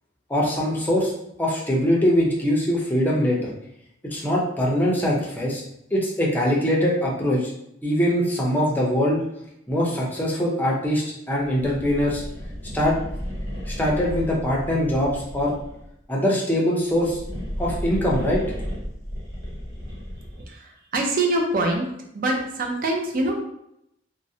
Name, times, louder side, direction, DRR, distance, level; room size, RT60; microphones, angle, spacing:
voice 1, 0.3-1.1 1.4-3.5 4.0-5.6 5.9-7.5 7.8-9.2 9.7-12.2 12.7-13.0 13.7-15.5 16.1-17.2 17.6-18.4, equal, 10° left, -4 dB, 0.5 m, -22 dB
sound 1, 11.5-15.9 16.8-20.5, equal, 85° right, 1.3 m, -33 dB
voice 2, 20.5-21.9 22.1-23.4, right 2 dB, 45° right, 1 dB, 0.4 m, -24 dB
2.5 x 2.0 x 2.6 m, 0.78 s
head